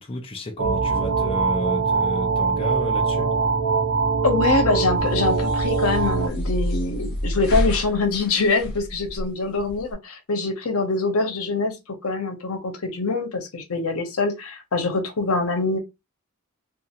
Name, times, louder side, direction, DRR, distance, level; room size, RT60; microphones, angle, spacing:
voice 1, 0.0-3.3, left 1 dB, 25° left, 0.5 m, -32 dB
sound 1, 0.6-6.3, right 4 dB, 55° right, 0.5 m, -22 dB
voice 2, 4.2-11.8 12.0-15.8, left 3 dB, 85° left, 0.8 m, -24 dB
sound 2, 5.0-9.9, equal, 55° left, 1.3 m, -29 dB
2.5 x 2.5 x 2.9 m
head